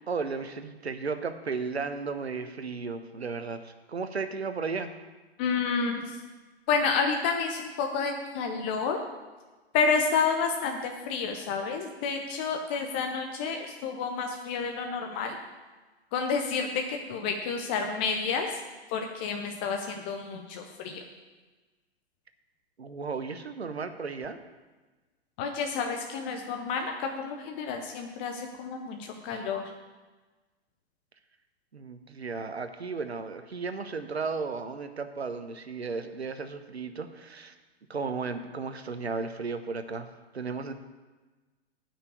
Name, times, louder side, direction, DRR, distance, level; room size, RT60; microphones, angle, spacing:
voice 1, 0.1-4.9 22.8-24.4 31.7-37.5 37.9-40.1 40.3-40.7, right 4 dB, 75° right, 9 dB, 1.1 m, -34 dB
voice 2, 5.4-6.2 6.7-9.0 9.7-15.4 16.1-18.6 18.9-21.0 25.4-29.6, left 5 dB, 10° left, 3 dB, 0.3 m, -30 dB
9.6 x 6.0 x 8.4 m, 1.3 s
figure-of-eight pair, 110°, 32 cm